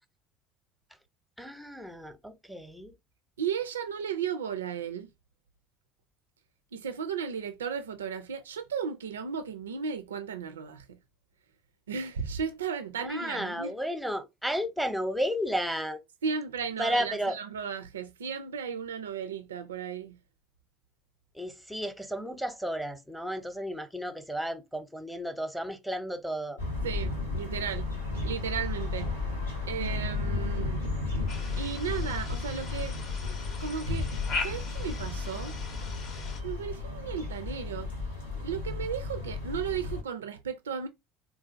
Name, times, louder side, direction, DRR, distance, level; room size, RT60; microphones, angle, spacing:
voice 1, 1.4-2.9 13.0-16.0 16.8-17.4 21.3-26.6, equal, ahead, 0.7 m, -33 dB
voice 2, 3.4-5.1 6.7-10.9 11.9-13.7 16.2-20.1 26.8-27.9 28.2-29.1 29.7-30.9 31.6-33.0 33.2-34.1 34.4-35.5 36.4-37.9 38.3-40.9, right 7 dB, 75° right, 0.3 m, -35 dB
sound 1, 26.6-40.0, left 3 dB, 85° left, 1.0 m, -34 dB
sound 2, 31.3-36.4, left 4 dB, 45° left, 0.7 m, -39 dB
3.8 x 2.4 x 2.5 m
figure-of-eight pair, 65°, 0 cm